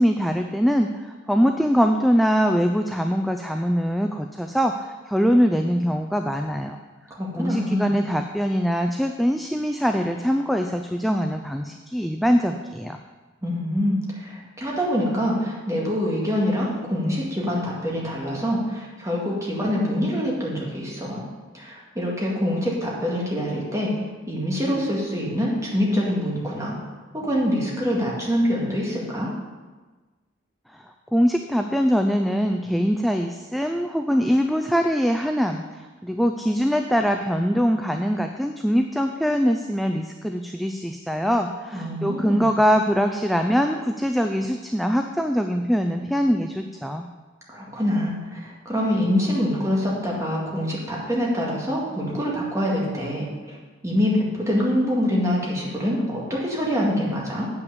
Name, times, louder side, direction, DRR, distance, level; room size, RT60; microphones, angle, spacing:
voice 1, 0.0-6.8 7.4-13.0 30.7-30.8 31.1-47.1, equal, ahead, 4 dB, 0.3 m, -23 dB
voice 2, 7.1-7.9 13.4-21.2 21.5-23.9 24.3-26.7 27.1-29.3 41.7-42.5 47.5-53.6 53.8-57.5, equal, 15° right, -4 dB, 2.0 m, -25 dB
7.9 x 5.9 x 6.8 m, 1.3 s
head